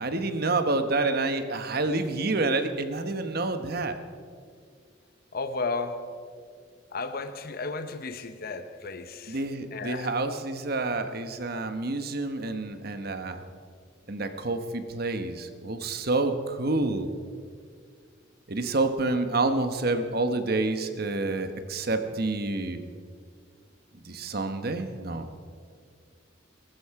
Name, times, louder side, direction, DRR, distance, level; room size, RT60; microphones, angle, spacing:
voice 1, 0.0-4.0 9.3-13.4 14.1-17.1 18.5-22.8 24.0-25.3, right 2 dB, 50° right, 1.2 m, -28 dB
voice 2, 5.3-6.3 6.9-9.4 9.7-10.1, left 3 dB, 50° left, 0.8 m, -34 dB
22.0 x 13.5 x 4.9 m
head